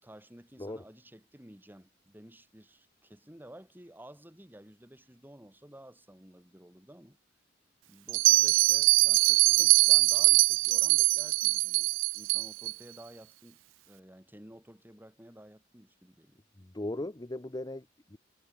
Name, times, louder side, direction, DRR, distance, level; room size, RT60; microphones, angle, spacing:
voice 1, 0.0-7.2 7.9-13.6 13.9-16.4, right 1 dB, 10° right, 4.5 m, -53 dB
Bell, 8.1-12.7, right 22 dB, 75° right, 0.3 m, -23 dB
voice 2, 16.6-18.2, left 1 dB, 20° left, 0.9 m, -38 dB
head